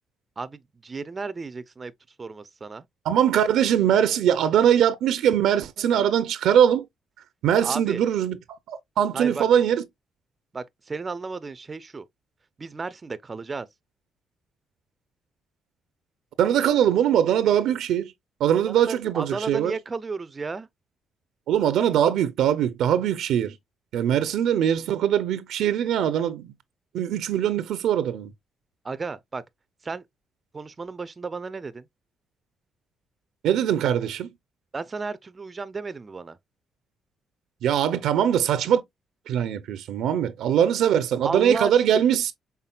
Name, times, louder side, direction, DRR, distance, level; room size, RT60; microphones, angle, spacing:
voice 1, 0.4-1.9 2.2-2.9 7.6-8.0 9.1-9.4 10.5-12.0 12.6-13.7 18.7-20.7 28.8-29.4 29.8-30.0 30.5-31.9 34.7-36.4 41.2-42.0, right 4 dB, 30° right, 0.4 m, -33 dB
voice 2, 3.0-6.9 7.4-8.3 8.7-9.8 16.4-18.1 18.4-19.7 21.5-23.6 23.9-26.5 26.9-28.3 33.4-34.3 37.6-38.8 39.3-42.3, right 9 dB, 80° right, 0.5 m, -22 dB
5.7 x 3.6 x 2.3 m
cardioid pair, 90°, 0 cm